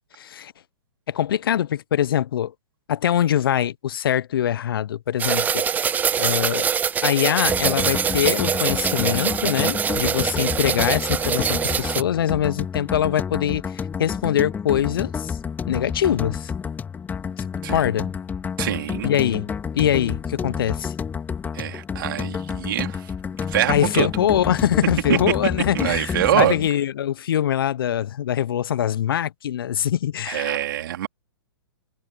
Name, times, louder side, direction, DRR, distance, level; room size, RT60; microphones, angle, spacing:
voice 1, 0.2-0.5 1.1-2.5 2.9-5.6 6.2-6.7 7.0-13.6 14.0-15.4 15.7-16.5 17.4-18.1 19.0-20.9 23.7-30.6, left 10 dB, 65° left, 0.8 m, -23 dB
sound 1, 5.2-12.0, right 7 dB, 15° right, 0.5 m, -23 dB
sound 2, 7.5-26.7, left 6 dB, 15° left, 4.3 m, -30 dB
voice 2, 18.6-19.1 21.5-23.1 23.5-24.1 25.1-26.6 30.3-31.1, right 12 dB, 60° right, 3.2 m, -24 dB
hypercardioid pair, 120°, 13 cm